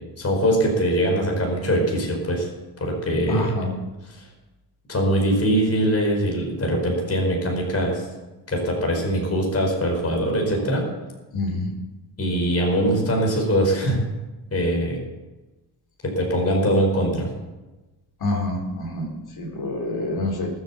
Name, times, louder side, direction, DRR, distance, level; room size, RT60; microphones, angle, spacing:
voice 1, 0.2-2.5 2.8-3.5 4.9-8.0 8.5-10.8 12.2-14.0 14.5-15.0 16.0-17.3, equal, 30° left, 0 dB, 4.6 m, -22 dB
voice 2, 3.3-3.7 11.3-11.7 18.2-20.5, left 2 dB, 55° left, 1 dB, 4.2 m, -27 dB
19.5 x 8.2 x 7.0 m, 1.1 s
cardioid pair, 100°, 45 cm